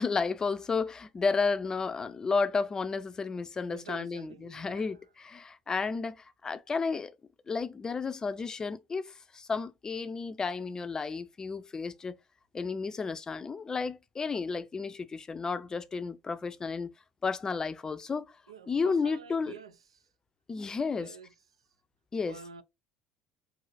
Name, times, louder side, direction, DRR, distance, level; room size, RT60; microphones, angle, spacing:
voice 1, 0.0-7.1 7.5-12.1 12.5-16.9 17.2-18.4 18.7-19.5 20.5-21.2 22.1-22.4, left 4 dB, 25° left, 0.5 m, -32 dB
voice 2, 3.7-5.0 18.5-20.1 20.9-21.3 22.3-22.6, right 5 dB, 75° right, 0.4 m, -48 dB
5.4 x 2.7 x 2.5 m
figure-of-eight pair, 60°, 3 cm